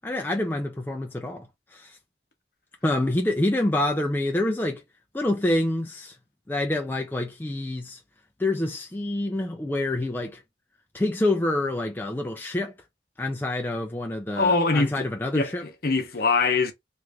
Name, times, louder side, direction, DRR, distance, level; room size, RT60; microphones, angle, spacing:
voice 1, 0.0-2.0 2.8-4.8 5.1-6.2 6.5-8.0 8.4-10.4 10.9-12.7 13.2-15.6, left 1 dB, 10° left, 0.4 m, -27 dB
voice 2, 14.4-16.7, left 4 dB, 55° left, 0.8 m, -24 dB
3.1 x 2.5 x 3.3 m
head